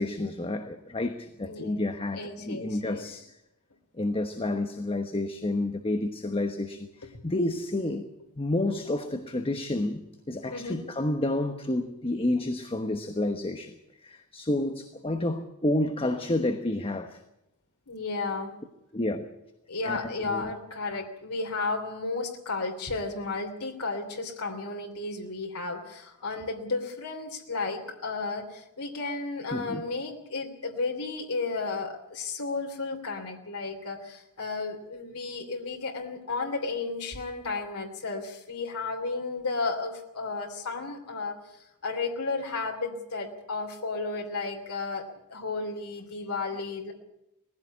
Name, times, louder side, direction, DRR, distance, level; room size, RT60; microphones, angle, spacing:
voice 1, 0.0-3.4 4.0-8.1 8.4-13.8 14.0-17.2 18.9-19.3 19.8-20.0 20.3-20.5 29.5-29.8, left 1 dB, 25° left, 1.1 m, -30 dB
voice 2, 1.4-1.8 2.1-3.1 10.5-10.8 17.9-18.5 19.7-46.9, left 3 dB, 80° left, 3.1 m, -33 dB
20.0 x 15.5 x 8.3 m
head